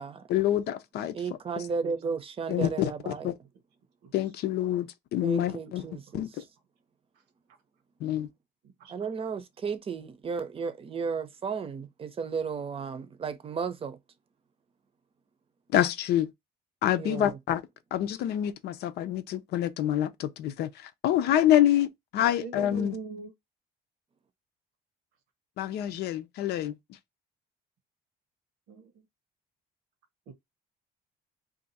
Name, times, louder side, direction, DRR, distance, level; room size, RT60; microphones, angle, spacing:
voice 1, 0.3-1.2 2.5-3.3 4.1-5.8 6.1-6.3 8.0-8.3 15.7-16.3 16.8-17.6 17.9-23.0 25.6-26.8, left 12 dB, 75° left, 0.6 m, -27 dB
voice 2, 1.1-3.3 5.2-6.3 8.9-14.0 17.0-17.4, right 5 dB, 35° right, 0.7 m, -34 dB
voice 3, 22.4-23.3 28.7-29.0 30.3-30.4, right 4 dB, 90° right, 1.0 m, -41 dB
2.7 x 2.5 x 4.0 m
cardioid pair, 110°, 17 cm